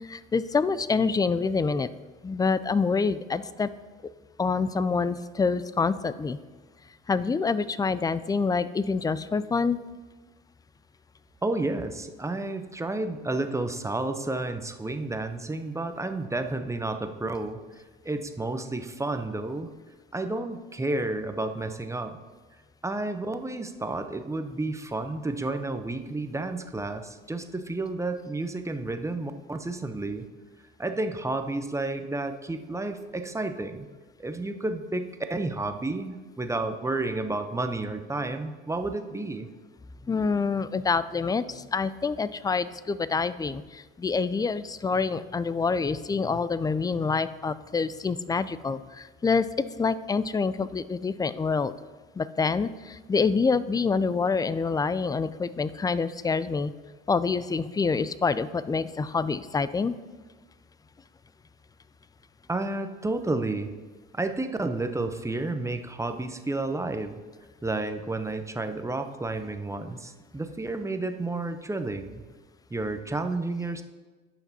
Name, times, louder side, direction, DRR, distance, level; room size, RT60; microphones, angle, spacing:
voice 1, 0.1-1.9 2.2-3.7 4.4-6.4 7.1-9.8 40.1-49.5 49.8-51.7 52.2-56.7 57.1-59.9, left 4 dB, 15° left, 16 dB, 0.4 m, -26 dB
voice 2, 11.4-17.6 18.0-19.7 20.1-22.2 22.8-30.3 30.8-33.9 34.2-35.0 35.3-39.5 62.5-63.7 64.1-67.2 67.6-72.2 72.7-73.8, right 2 dB, 10° right, 7 dB, 0.8 m, -31 dB
17.5 x 5.9 x 2.8 m, 1.3 s
hypercardioid pair, 70°, 29 cm